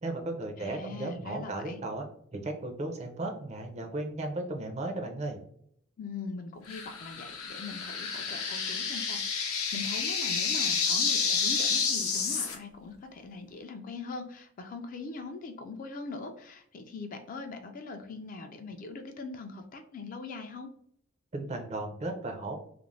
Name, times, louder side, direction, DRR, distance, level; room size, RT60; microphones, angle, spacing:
voice 1, 0.0-2.0 2.3-5.4 21.3-22.6, right 2 dB, 30° right, 3 dB, 0.4 m, -35 dB
voice 2, 0.6-1.8 6.0-20.7, left 3 dB, 40° left, 6 dB, 0.3 m, -41 dB
sound 1, 6.7-12.6, left 5 dB, 80° left, 0.6 m, -30 dB
2.5 x 2.0 x 3.0 m, 0.68 s
head